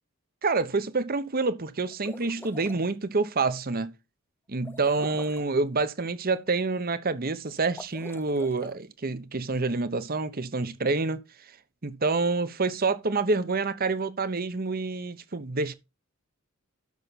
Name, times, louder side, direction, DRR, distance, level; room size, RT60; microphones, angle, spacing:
voice 1, 0.4-3.9 4.5-11.2 11.8-15.7, right 3 dB, 45° right, 1.0 m, -27 dB
sound 1, 1.9-2.8 4.6-5.5 7.6-8.7, left 2 dB, 10° left, 0.5 m, -44 dB
12.0 x 6.8 x 4.1 m
head